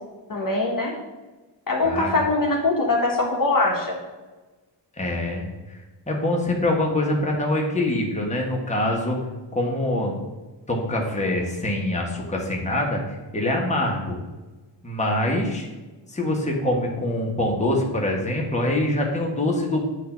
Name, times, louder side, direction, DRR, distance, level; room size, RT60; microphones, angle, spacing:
voice 1, 0.3-0.9 1.7-3.9, left 2 dB, 45° left, -1 dB, 1.2 m, -22 dB
voice 2, 1.8-2.2 5.0-9.2 9.5-10.1 10.7-14.1 14.8-15.7 16.1-19.9, left 1 dB, 15° left, -1 dB, 1.4 m, -24 dB
8.4 x 2.8 x 5.7 m, 1.2 s
cardioid pair, 95°, 46 cm